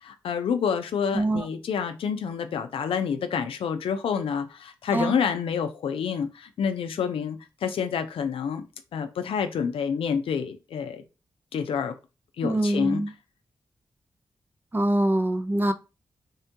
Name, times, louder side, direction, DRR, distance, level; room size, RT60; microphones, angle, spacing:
voice 1, 0.0-8.6 8.9-11.0 11.5-12.0 12.4-13.0, left 7 dB, 90° left, 0.4 m, -28 dB
voice 2, 1.1-1.5 4.9-5.1 12.4-13.1 14.7-15.7, right 1 dB, 20° right, 0.5 m, -24 dB
3.4 x 2.2 x 2.8 m
cardioid pair, 60°, 9 cm